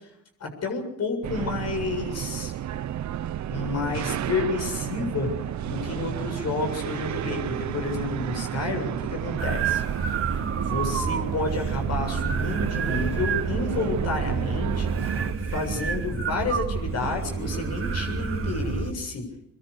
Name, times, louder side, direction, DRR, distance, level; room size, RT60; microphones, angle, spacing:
voice 1, 0.4-2.5 3.5-5.3 5.7-9.8 10.6-15.2 15.5-19.3, left 3 dB, 55° left, 4 dB, 7.4 m, -30 dB
sound 1, 1.2-15.3, right 11 dB, 65° right, 1.1 m, -31 dB
sound 2, 3.5-9.1, left 3 dB, 20° left, 6.6 m, -46 dB
sound 3, 9.4-18.9, right 5 dB, 45° right, 3.1 m, -29 dB
24.0 x 22.5 x 6.8 m, 0.70 s
cardioid pair, 90°, 30 cm